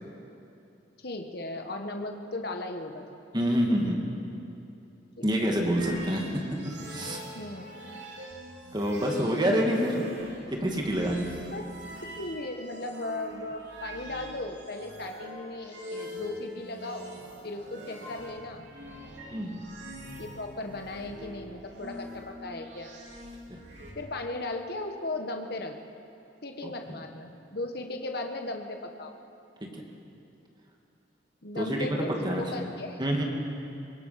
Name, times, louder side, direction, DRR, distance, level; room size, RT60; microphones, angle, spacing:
voice 1, 1.0-3.2 5.2-5.5 7.3-7.6 11.2-11.6 12.2-17.1 17.4-18.7 20.2-23.0 23.9-25.8 26.4-29.1 31.4-33.0, left 2 dB, 55° left, 4 dB, 1.4 m, -37 dB
voice 2, 3.3-4.1 5.2-7.2 8.7-10.1 10.5-11.3 19.3-19.6 23.5-23.6 26.6-27.0 29.6-30.0 31.5-32.6 33.0-33.2, equal, 25° right, 0 dB, 2.4 m, -28 dB
sound 1, 5.5-23.9, right 1 dB, 70° right, 3.6 m, -44 dB
24.0 x 20.5 x 5.9 m, 2.7 s
head